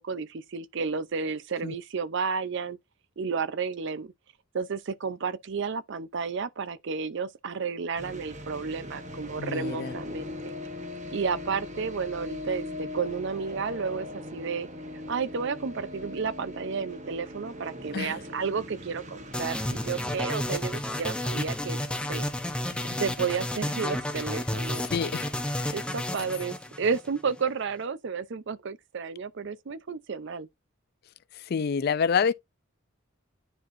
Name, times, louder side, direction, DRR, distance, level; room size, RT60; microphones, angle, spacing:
voice 1, 0.0-2.8 3.2-4.1 4.5-10.5 11.1-14.1 14.3-14.7 15.1-21.8 22.1-22.3 23.0-24.9 25.7-30.5, right 5 dB, 60° right, 0.5 m, -32 dB
sound 1, 8.0-20.2, left 1 dB, 35° right, 1.1 m, -40 dB
voice 2, 9.4-9.9 17.9-18.2 22.7-23.0 24.9-25.8 31.3-32.3, left 6 dB, 50° left, 0.4 m, -28 dB
sound 2, 19.3-27.4, left 1 dB, 5° left, 0.7 m, -31 dB
10.0 x 4.4 x 2.5 m
head